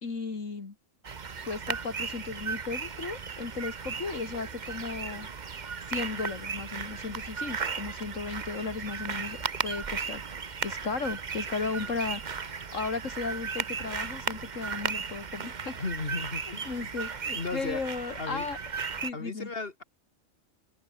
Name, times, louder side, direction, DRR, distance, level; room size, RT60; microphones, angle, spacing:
voice 1, 0.0-0.7 1.5-5.3 5.9-10.2 10.6-15.8 16.7-18.6 19.0-19.5, left 4 dB, 70° left, 2.9 m, -35 dB
sound 1, 1.0-19.1, right 5 dB, 40° right, 1.0 m, -36 dB
voice 2, 15.8-16.9 17.3-17.8 18.2-18.5 19.1-19.8, left 3 dB, 45° left, 2.6 m, -35 dB
omnidirectional pair, 1.4 m